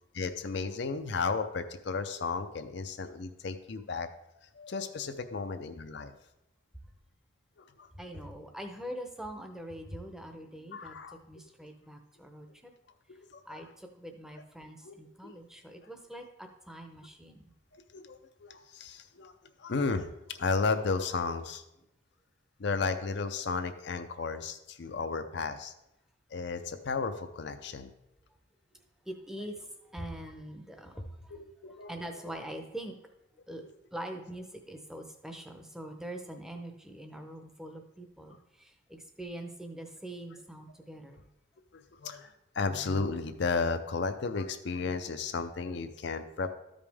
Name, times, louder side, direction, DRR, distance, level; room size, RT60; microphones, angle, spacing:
voice 1, 0.1-4.1 4.6-6.1 7.8-7.9 10.7-11.2 13.1-13.2 14.9-15.0 15.2-15.3 17.9-19.3 19.6-21.6 22.6-25.7 26.3-27.9 31.3-31.9 42.0-42.3 42.6-46.5, left 4 dB, 55° left, 8 dB, 0.5 m, -33 dB
voice 2, 8.0-11.0 11.3-12.7 13.5-17.5 29.1-33.0 33.5-33.6 33.9-41.3, right 1 dB, ahead, 5 dB, 0.7 m, -43 dB
13.0 x 5.1 x 3.5 m, 0.89 s
head